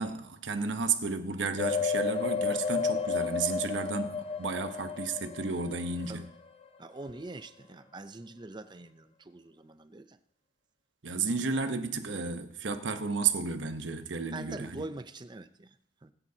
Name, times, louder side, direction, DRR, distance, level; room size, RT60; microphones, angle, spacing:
voice 1, 0.0-6.2 11.0-14.8, right 4 dB, 85° right, 1.0 m, -32 dB
sound 1, 1.6-6.2 6.6-6.7, left 5 dB, 35° left, 0.6 m, -32 dB
voice 2, 6.8-10.2 14.3-15.8 16.0-16.1, right 2 dB, 25° right, 0.6 m, -44 dB
20.5 x 9.0 x 2.8 m
head